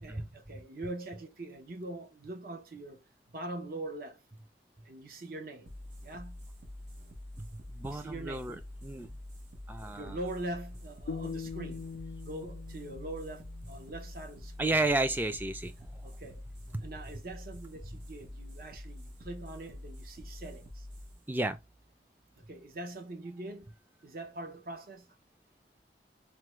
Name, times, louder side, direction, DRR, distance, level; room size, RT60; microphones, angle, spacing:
voice 1, 0.0-4.2 4.8-5.7 6.0-6.4 7.8-8.5 9.8-11.9 12.2-14.7 16.0-16.4 16.8-20.9 22.4-23.7 24.0-25.1, right 2 dB, 55° right, 0.7 m, -43 dB
sound 1, 5.7-22.7, left 1 dB, 80° right, 0.9 m, -47 dB
voice 2, 7.4-9.2 9.7-10.2 14.6-16.0 16.7-16.8 21.3-21.6, right 2 dB, 10° right, 0.3 m, -32 dB
sound 2, 11.1-14.2, left 5 dB, 85° left, 0.4 m, -43 dB
3.5 x 2.1 x 3.0 m
head